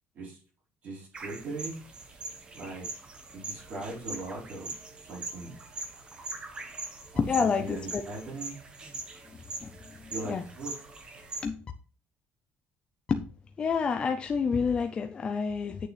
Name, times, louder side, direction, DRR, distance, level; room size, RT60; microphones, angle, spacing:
voice 1, 0.8-1.8 2.5-2.9 3.3-4.7 5.0-5.5 7.1-8.6 10.1-10.7, right 2 dB, 40° right, -4 dB, 4.8 m, -39 dB
sound 1, 1.1-11.5, right 3 dB, 20° right, 1.2 m, -42 dB
voice 2, 7.2-8.0 9.6-9.7 10.0-10.4 11.4-11.6 13.1-13.3 13.6-15.9, left 5 dB, 25° left, 6 dB, 0.5 m, -28 dB
8.3 x 6.6 x 3.3 m, 0.39 s
cardioid pair, 180°, 4 cm